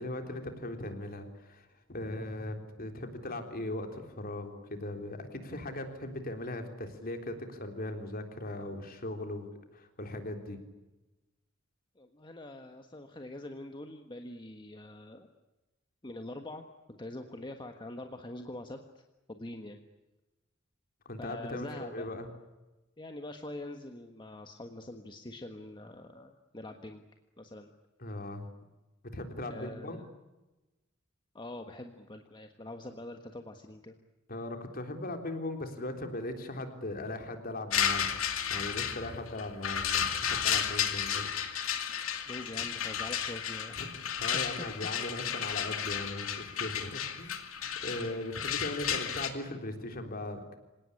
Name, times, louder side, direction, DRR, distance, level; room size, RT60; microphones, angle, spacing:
voice 1, 0.0-9.5 9.7-10.6 21.1-22.3 28.0-28.4 29.1-30.1 34.3-41.3 41.9-42.3 43.7-47.4 47.8-50.6, left 1 dB, 45° left, 5 dB, 3.7 m, -39 dB
voice 2, 12.0-15.3 16.0-19.0 19.3-19.8 21.2-22.1 23.0-27.0 27.4-27.7 29.5-30.1 31.3-34.0 42.2-43.8 44.3-44.7, left 1 dB, 25° left, 5 dB, 1.5 m, -44 dB
sound 1, 37.7-49.3, left 8 dB, 75° left, 2.5 m, -33 dB
26.5 x 18.5 x 10.0 m, 1.1 s
head